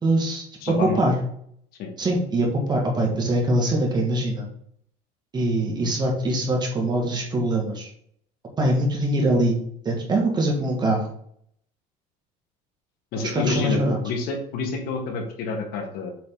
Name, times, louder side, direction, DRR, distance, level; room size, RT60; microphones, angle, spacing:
voice 1, 0.0-1.2 2.0-4.5 5.3-7.9 8.6-9.6 9.9-11.1 13.3-14.0, right 1 dB, 25° right, 0 dB, 1.9 m, -23 dB
voice 2, 0.6-1.0 1.8-1.9 13.1-16.1, left 4 dB, 60° left, 3 dB, 1.7 m, -28 dB
7.7 x 4.0 x 3.9 m, 0.66 s
cardioid pair, 140°, 17 cm